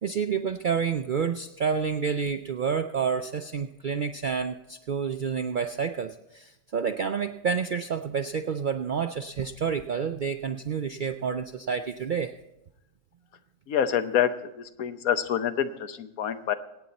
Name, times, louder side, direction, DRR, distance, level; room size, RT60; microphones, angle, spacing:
voice 1, 0.0-12.3, right 6 dB, 70° right, 7 dB, 0.4 m, -29 dB
voice 2, 13.7-14.3 14.6-16.5, left 9 dB, 85° left, 10 dB, 1.3 m, -26 dB
24.5 x 8.8 x 4.1 m, 0.91 s
omnidirectional pair, 1.5 m